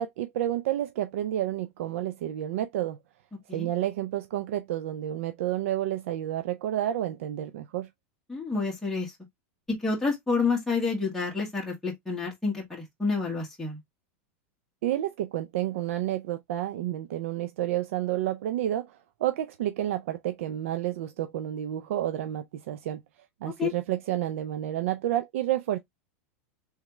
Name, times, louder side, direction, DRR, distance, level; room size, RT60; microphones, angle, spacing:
voice 1, 0.0-3.0 3.5-7.9 14.8-23.0 23.4-25.8, right 12 dB, 75° right, 0.5 m, -30 dB
voice 2, 8.3-9.1 9.8-13.8 23.6-23.7, left 4 dB, 5° left, 1.4 m, -29 dB
3.6 x 3.2 x 2.9 m
supercardioid pair, 155°, 7 cm